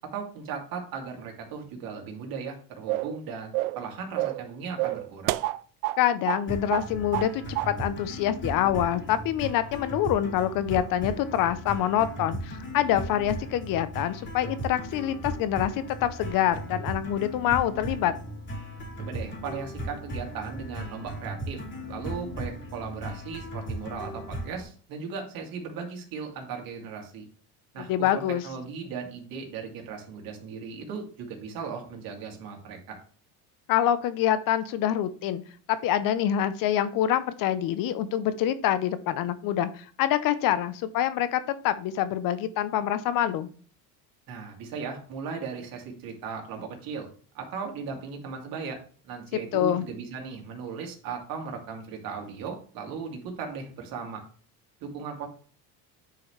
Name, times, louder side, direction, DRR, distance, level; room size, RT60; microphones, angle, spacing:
voice 1, 0.1-5.4 19.0-21.6 21.9-27.2 27.7-33.0 44.3-47.1 47.3-54.2 54.8-55.3, right 5 dB, 60° right, 1 dB, 2.8 m, -37 dB
sound 1, 2.9-3.2 3.5-3.8 4.2-4.5 4.8-6.0 6.3-6.4 6.7-7.3 7.6-7.7, right 18 dB, 90° right, 0.5 m, -28 dB
voice 2, 6.0-18.1 27.8-28.4 33.7-35.4 35.7-43.5 49.3-49.9, left 11 dB, 55° left, 13 dB, 0.9 m, -26 dB
sound 2, 6.5-24.6, right 1 dB, 25° left, 3.0 m, -37 dB
9.6 x 5.8 x 3.3 m, 0.43 s
cardioid pair, 125°, 40 cm